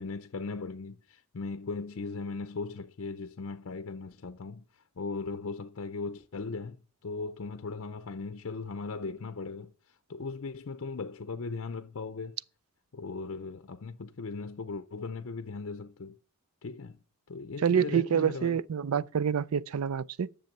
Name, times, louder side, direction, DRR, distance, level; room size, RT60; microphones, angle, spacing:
voice 1, 0.0-12.4 12.9-16.2 16.6-17.0 17.3-18.6, left 4 dB, 60° left, 0.6 m, -38 dB
voice 2, 17.6-20.3, right 7 dB, 75° right, 0.4 m, -27 dB
10.5 x 6.8 x 6.5 m
head